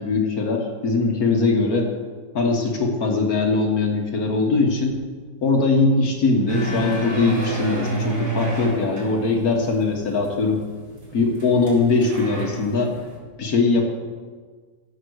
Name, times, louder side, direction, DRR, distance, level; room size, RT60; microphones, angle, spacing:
voice 1, 0.0-1.9 2.3-5.0 5.4-10.6 11.1-12.9 13.4-13.8, left 3 dB, 65° left, 2 dB, 1.9 m, -21 dB
sound 1, 6.5-13.2, right 3 dB, 80° right, 3.7 m, -30 dB
17.0 x 5.9 x 6.4 m, 1.6 s
omnidirectional pair, 1.7 m